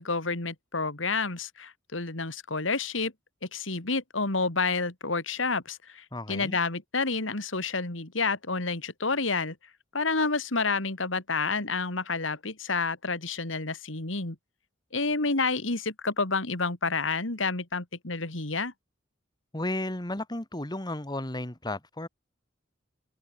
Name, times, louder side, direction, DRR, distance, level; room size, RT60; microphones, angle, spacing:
voice 1, 0.0-3.1 3.5-9.6 9.9-14.4 14.9-18.7, left 4 dB, 85° left, 2.8 m, -29 dB
voice 2, 6.1-6.6 19.5-22.1, left 1 dB, 20° left, 2.5 m, -33 dB
head